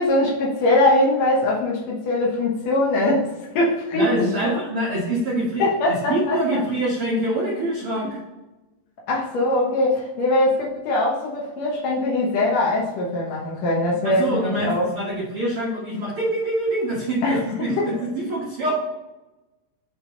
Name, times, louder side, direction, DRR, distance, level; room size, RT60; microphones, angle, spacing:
voice 1, 0.0-4.3 5.6-6.4 9.1-14.9 17.2-17.4 17.8-17.9, left 2 dB, 80° left, -3 dB, 1.5 m, -21 dB
voice 2, 3.9-5.6 6.1-8.2 14.0-18.7, right 1 dB, 65° right, -6 dB, 1.3 m, -25 dB
8.8 x 3.7 x 3.8 m, 1.1 s
omnidirectional pair, 4.7 m